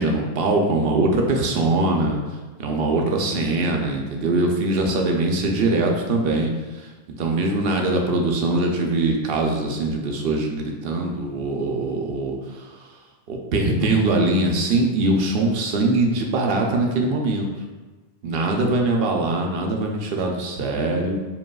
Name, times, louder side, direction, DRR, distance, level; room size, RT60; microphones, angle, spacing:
voice 1, 0.0-2.2 2.6-6.5 7.1-12.3 13.3-17.5 18.2-21.2, right 2 dB, 70° right, 1 dB, 0.8 m, -22 dB
5.1 x 3.3 x 2.3 m, 1.2 s
omnidirectional pair, 1.1 m